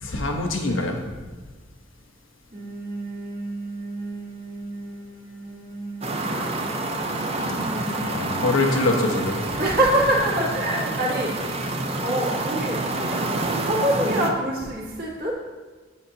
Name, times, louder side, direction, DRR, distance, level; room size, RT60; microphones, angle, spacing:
voice 1, 0.0-1.0 8.0-9.4, left 2 dB, 75° left, 3 dB, 1.0 m, -24 dB
voice 2, 2.5-6.8 7.4-8.5 9.6-11.3 12.0-15.3, right 1 dB, 50° right, -4 dB, 1.9 m, -27 dB
sound 1, 6.0-14.3, right 2 dB, 30° right, 0.6 m, -28 dB
8.3 x 7.7 x 2.8 m, 1.4 s
head